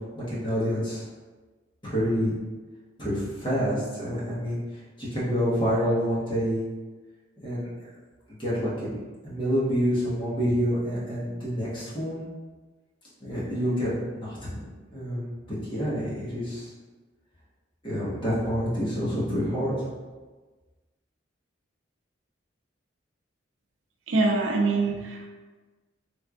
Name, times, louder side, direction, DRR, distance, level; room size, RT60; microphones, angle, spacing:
voice 1, 0.1-1.0 1.8-2.3 3.0-4.6 5.0-6.6 7.4-7.7 8.3-8.9 9.2-12.3 13.2-16.7 17.8-19.9, equal, 25° left, -9 dB, 1.2 m, -28 dB
voice 2, 24.1-25.3, right 3 dB, 80° right, 1 dB, 0.5 m, -24 dB
3.5 x 3.2 x 2.4 m, 1.3 s
head